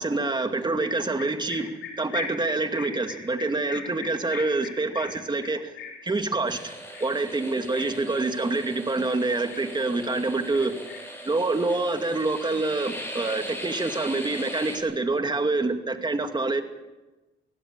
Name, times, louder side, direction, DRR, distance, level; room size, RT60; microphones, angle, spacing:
voice 1, 0.0-5.7 6.0-10.7 11.2-16.6, right 3 dB, 20° right, 2.4 m, -26 dB
sound 1, 0.8-10.1 10.5-11.2 11.6-12.5 12.8-14.1, left 6 dB, 75° left, 5.8 m, -41 dB
sound 2, 6.5-14.8, equal, 10° left, 7.2 m, -39 dB
23.5 x 17.0 x 7.6 m
cardioid pair, 90°, 20 cm